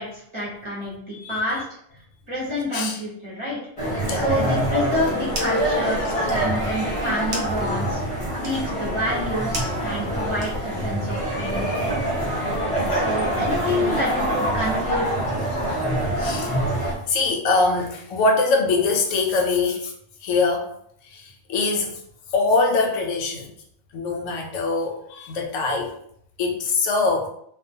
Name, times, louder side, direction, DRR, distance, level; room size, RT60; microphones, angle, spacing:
voice 1, 0.0-1.6 2.3-3.6 4.1-8.0 8.4-11.9 12.9-15.1, left 1 dB, 25° right, -7 dB, 0.8 m, -28 dB
sound 1, 3.8-16.9, right 1 dB, 35° left, 0.5 m, -25 dB
sound 2, 5.2-5.7 6.0-10.9, right 1 dB, 65° right, 0.8 m, -37 dB
voice 2, 10.9-11.6 15.7-15.9 16.2-16.6 17.1-19.9 20.2-20.7 21.0-22.0 22.3-23.5 23.9-25.9 26.4-27.3, left 3 dB, 70° left, 2 dB, 0.9 m, -23 dB
2.4 x 2.3 x 2.6 m, 0.68 s
omnidirectional pair, 1.5 m